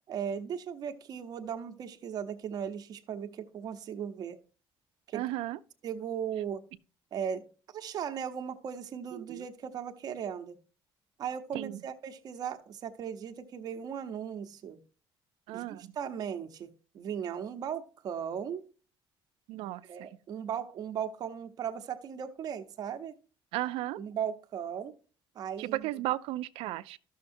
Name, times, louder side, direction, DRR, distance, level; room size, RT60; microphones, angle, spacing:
voice 1, 0.1-4.4 5.1-5.2 5.8-6.6 7.1-7.4 7.7-10.6 11.2-14.8 15.5-18.6 19.8-23.1 24.0-24.9 25.3-25.9, right 8 dB, 45° right, 0.8 m, -37 dB
voice 2, 5.1-5.6 9.1-9.5 11.5-11.8 15.5-15.9 19.5-20.1 23.5-24.0 25.6-27.0, right 16 dB, 90° right, 0.4 m, -35 dB
12.5 x 6.4 x 2.6 m
cardioid pair, 160°, 9 cm